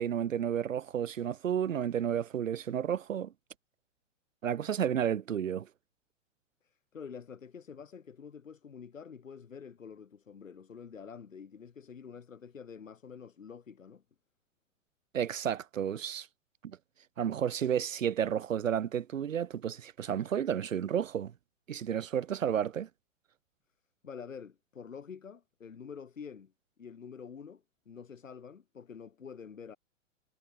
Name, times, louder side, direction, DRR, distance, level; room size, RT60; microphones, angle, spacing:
voice 1, 0.0-3.3 4.4-5.7 15.1-16.3 16.6-16.8 17.2-21.3 21.7-22.9, right 9 dB, 90° right, 0.9 m, -31 dB
voice 2, 6.6-14.0 24.0-26.5 26.8-29.8, left 6 dB, 85° left, 6.5 m, -47 dB
hypercardioid pair, 120°, 38 cm